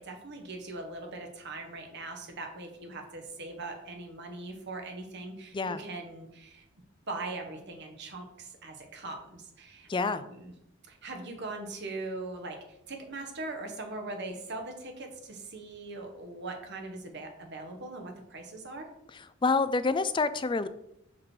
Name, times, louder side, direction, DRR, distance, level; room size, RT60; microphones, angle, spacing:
voice 1, 0.0-6.6 7.1-10.5 10.9-18.9, right 2 dB, 55° right, 4 dB, 1.4 m, -41 dB
voice 2, 9.9-10.2 19.4-20.7, left 4 dB, 25° left, 13 dB, 0.4 m, -27 dB
6.3 x 5.9 x 4.7 m, 0.79 s
head